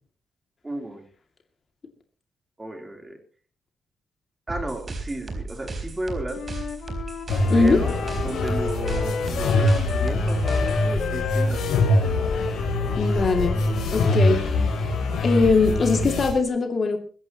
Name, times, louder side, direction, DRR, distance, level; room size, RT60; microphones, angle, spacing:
voice 1, 0.6-1.0 2.6-3.2 4.5-6.4 7.5-11.8, right 1 dB, 15° right, 4 dB, 3.4 m, -33 dB
sound 1, 4.5-10.9, right 3 dB, 30° right, 4.0 m, -35 dB
Wind instrument woodwind instrument, 6.3-10.2 10.4-14.7, left 6 dB, 55° left, 1.9 m, -33 dB
sound 2, 7.3-16.3, left 2 dB, 80° left, 7.1 m, -24 dB
voice 2, 7.5-7.8 13.0-13.6 13.9-14.8 15.2-17.0, left 4 dB, 35° left, 4 dB, 2.3 m, -21 dB
21.5 x 16.0 x 2.9 m, 0.39 s
wide cardioid pair, 165°, 0 cm